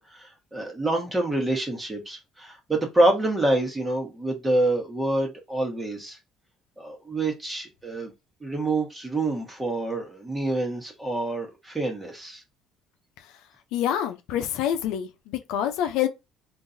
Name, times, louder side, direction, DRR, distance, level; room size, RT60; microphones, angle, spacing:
voice 1, 0.1-6.2 6.8-8.1 8.4-12.4, right 2 dB, 15° right, 1.4 m, -27 dB
voice 2, 13.7-16.1, left 10 dB, 80° left, 0.6 m, -26 dB
3.8 x 2.6 x 2.6 m
cardioid pair, 100°, 0 cm